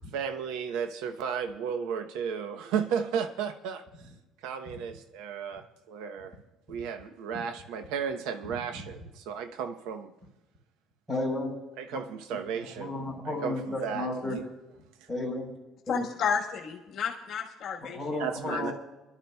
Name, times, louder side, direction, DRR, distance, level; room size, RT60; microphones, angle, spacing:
voice 1, 0.1-3.8 4.4-6.3 6.7-10.1 11.8-12.9 13.2-14.4 18.2-18.7, right 7 dB, 90° right, 0.9 m, -34 dB
voice 2, 11.1-11.6 11.9-12.0 12.8-14.4 15.1-15.5 15.9-16.0 17.9-18.7, left 2 dB, ahead, 4.4 m, -33 dB
voice 3, 15.9-18.2 18.5-18.6, left 7 dB, 50° left, 1.4 m, -32 dB
24.5 x 12.0 x 2.3 m
cardioid pair, 150°, 0 cm